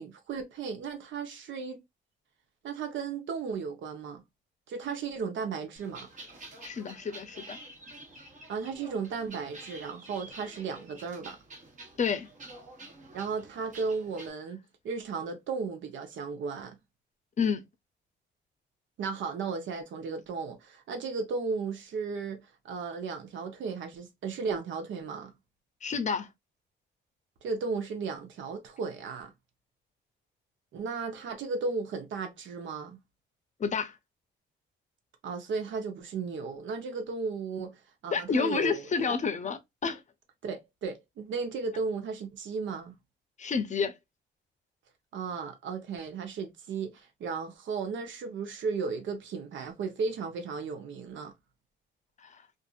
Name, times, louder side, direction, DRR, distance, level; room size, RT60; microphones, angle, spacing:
voice 1, 0.0-1.8 2.6-4.2 4.7-6.1 8.5-11.4 13.1-16.8 19.0-25.3 27.4-29.3 30.7-33.0 35.2-39.2 40.4-42.9 45.1-51.3, right 5 dB, 70° right, 0.9 m, -35 dB
sound 1, 5.8-14.3, right 2 dB, 40° right, 1.2 m, -49 dB
voice 2, 6.6-7.6 12.0-12.3 17.4-17.6 25.8-26.3 33.6-34.0 38.1-40.0 43.4-43.9 52.2-52.4, left 5 dB, 35° left, 0.6 m, -29 dB
2.6 x 2.5 x 2.4 m
cardioid pair, 90°, 20 cm